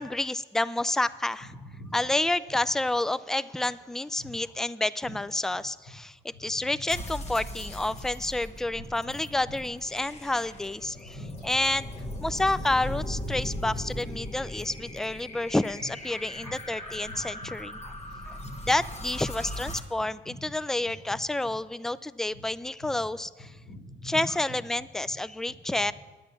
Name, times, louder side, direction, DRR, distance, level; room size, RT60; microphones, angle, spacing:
voice 1, 0.0-1.5 1.9-11.2 11.4-11.9 12.2-17.8 18.2-18.4 18.7-23.5 24.0-25.9, left 2 dB, ahead, 17 dB, 0.3 m, -29 dB
voice 2, 1.6-2.1 4.2-4.3 6.3-6.8 8.7-8.8 11.0-11.5 13.3-13.4 16.4-16.5 17.1-17.5 17.9-18.5 20.3-20.5 21.1-21.2 22.3-22.4 23.6-24.2 25.7-25.8, equal, 85° left, -1 dB, 3.6 m, -44 dB
sound 1, 6.9-19.8, left 1 dB, 35° left, 1.3 m, -39 dB
9.6 x 9.3 x 6.9 m, 1.2 s
cardioid pair, 90°, 20 cm